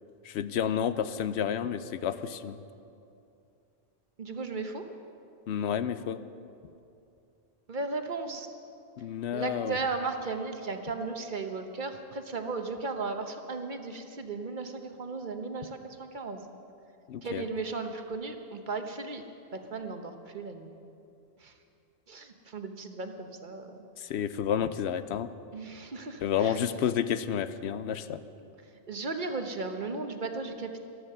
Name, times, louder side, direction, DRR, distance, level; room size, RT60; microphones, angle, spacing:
voice 1, 0.2-2.6 5.5-6.2 9.0-9.8 17.1-17.5 24.0-25.3 26.2-28.2, left 8 dB, 85° left, 13 dB, 0.9 m, -30 dB
voice 2, 4.2-4.8 7.7-8.5 9.3-16.4 17.2-19.2 19.5-20.7 21.4-21.5 22.1-23.8 25.5-26.6 28.9-30.8, right 3 dB, 50° right, 6 dB, 1.1 m, -36 dB
13.0 x 13.0 x 6.6 m, 2.6 s
omnidirectional pair, 1.1 m